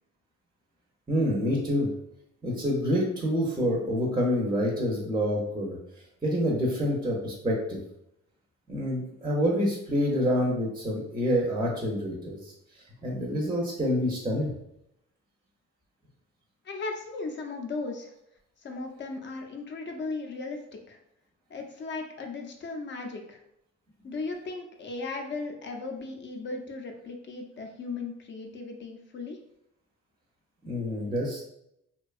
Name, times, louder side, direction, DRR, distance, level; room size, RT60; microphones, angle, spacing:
voice 1, 1.1-1.9 2.4-5.8 6.2-7.8 8.7-12.5 13.0-14.5 30.6-31.4, equal, 15° right, -1 dB, 0.5 m, -27 dB
voice 2, 16.6-18.1 18.6-21.0 21.5-23.4 24.0-29.4, left 3 dB, 40° left, 3 dB, 0.5 m, -37 dB
2.7 x 2.2 x 2.3 m, 0.77 s
cardioid pair, 90°, 30 cm